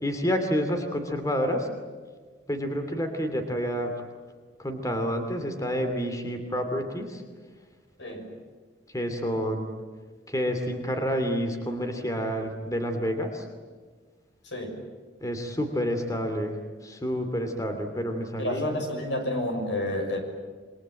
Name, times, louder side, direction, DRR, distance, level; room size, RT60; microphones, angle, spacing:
voice 1, 0.0-1.7 2.5-3.9 4.6-7.2 8.9-9.7 10.3-13.5 15.2-16.6 16.8-18.8, equal, 20° left, 6 dB, 2.7 m, -29 dB
voice 2, 8.0-8.3 14.4-14.8 18.4-20.2, left 1 dB, 85° left, 4 dB, 6.3 m, -30 dB
27.5 x 23.5 x 8.9 m, 1.5 s
head